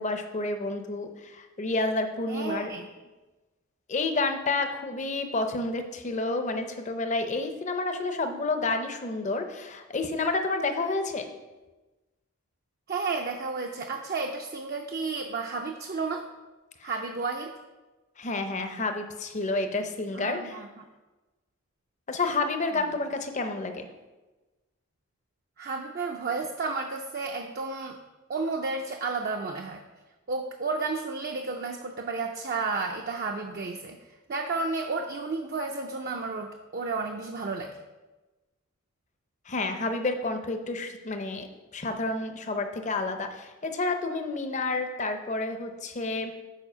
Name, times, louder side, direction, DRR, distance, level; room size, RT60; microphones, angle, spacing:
voice 1, 0.0-2.7 3.9-11.3 16.8-16.9 18.2-20.7 22.1-23.9 39.5-46.3, left 3 dB, 35° left, 6 dB, 0.6 m, -30 dB
voice 2, 2.3-2.9 12.9-16.3 16.8-17.5 20.1-20.7 25.6-28.0 28.3-29.8 30.3-34.0 34.3-37.8, right 4 dB, 45° right, 2 dB, 0.5 m, -32 dB
7.1 x 4.8 x 5.5 m, 1.2 s
head